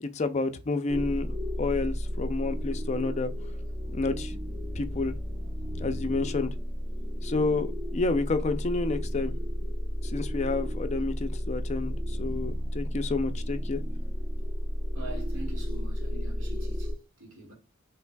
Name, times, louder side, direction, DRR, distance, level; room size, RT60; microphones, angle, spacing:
voice 1, 0.0-3.3 3.9-4.3 4.7-5.1 5.8-6.5 7.2-9.3 10.0-13.8, left 3 dB, 30° left, 0.4 m, -30 dB
sound 1, 0.9-16.9, equal, 25° right, 0.9 m, -32 dB
voice 2, 15.0-16.9 17.2-17.5, right 2 dB, 65° right, 1.9 m, -43 dB
5.8 x 3.2 x 2.2 m
head